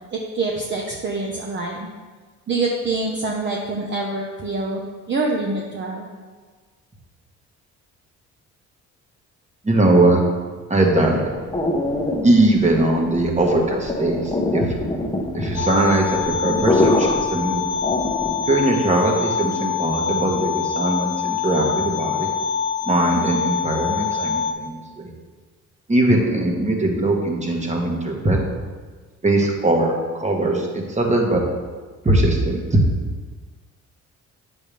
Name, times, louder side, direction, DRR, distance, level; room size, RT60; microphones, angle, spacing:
voice 1, 0.1-1.9 2.5-6.1, right 3 dB, 40° right, 0 dB, 1.0 m, -25 dB
voice 2, 9.6-10.2 10.7-11.3 12.2-14.7 15.3-17.6 18.5-22.3 22.9-25.1 25.9-28.4 29.2-29.9 30.2-31.4 32.0-32.8, right 2 dB, 25° right, 1 dB, 1.7 m, -20 dB
sound 1, 10.8-18.6, left 2 dB, 15° left, 1.1 m, -25 dB
sound 2, 15.5-24.5, left 7 dB, 70° left, 1.0 m, -25 dB
8.6 x 7.0 x 3.4 m, 1.4 s
cardioid pair, 90°, 30 cm